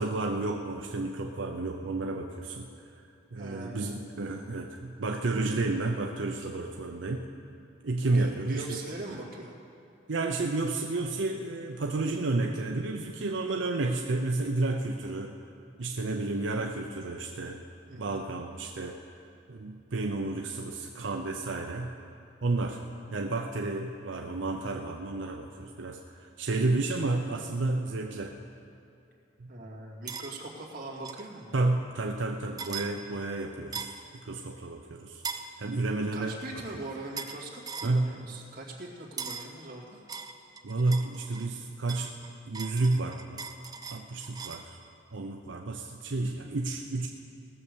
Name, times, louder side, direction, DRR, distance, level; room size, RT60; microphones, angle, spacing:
voice 1, 0.0-2.7 3.3-7.3 7.8-8.8 10.1-15.3 15.8-17.6 17.9-19.0 19.5-21.9 22.4-22.8 23.1-28.4 29.4-29.5 31.5-33.9 34.2-35.2 35.6-36.6 37.8-38.1 40.6-42.1 42.5-43.4 43.9-44.8 45.1-47.1, right 2 dB, 85° right, 2 dB, 0.6 m, -31 dB
voice 2, 3.3-3.9 8.1-9.6 17.9-18.2 29.5-31.5 36.1-40.0, right 2 dB, 50° right, -4 dB, 2.3 m, -41 dB
sound 1, 30.1-30.3 31.0-31.3 32.6-32.9 33.7-34.0 35.2-35.5 37.2-37.4 37.7-38.0 39.2-39.5 40.1-41.5 41.9-44.7, right 5 dB, 20° right, 0.5 m, -39 dB
18.5 x 6.8 x 6.9 m, 2.6 s
head